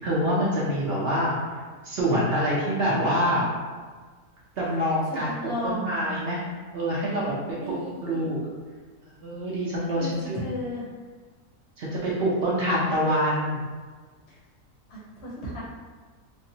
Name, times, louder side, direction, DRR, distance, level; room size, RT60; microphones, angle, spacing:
voice 1, 0.0-1.6 1.8-3.5 4.6-5.3 5.6-6.4 6.7-7.8 8.0-8.4 9.1-10.4 11.8-13.6, equal, 65° right, -6 dB, 0.6 m, -26 dB
voice 2, 5.1-6.0 7.5-8.3 9.9-10.8 14.3-14.4 14.9-15.6, equal, 55° left, -6 dB, 0.8 m, -34 dB
3.2 x 2.0 x 2.7 m, 1.5 s
omnidirectional pair, 1.6 m